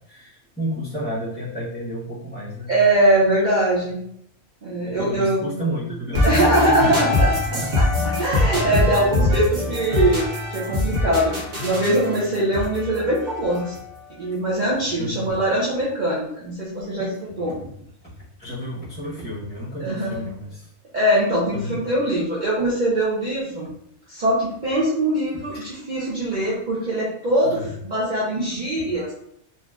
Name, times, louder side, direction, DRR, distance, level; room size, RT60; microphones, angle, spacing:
voice 1, 0.1-2.7 4.9-7.7 7.9-8.2 8.9-9.1 14.9-15.4 17.6-17.7 18.0-18.1 18.4-20.7 21.5-21.8 25.5-25.7 27.4-27.8, right 1 dB, 10° left, -13 dB, 0.9 m, -31 dB
voice 2, 2.7-4.0 4.6-5.5 6.2-7.3 8.2-11.3 11.6-13.7 14.2-17.5 19.8-20.2 20.9-23.7 24.1-29.1, right 1 dB, 45° right, -7 dB, 0.7 m, -22 dB
sound 1, 6.1-14.0, left 1 dB, 70° right, 1.4 m, -23 dB
4.1 x 2.6 x 2.4 m, 0.72 s
omnidirectional pair, 1.4 m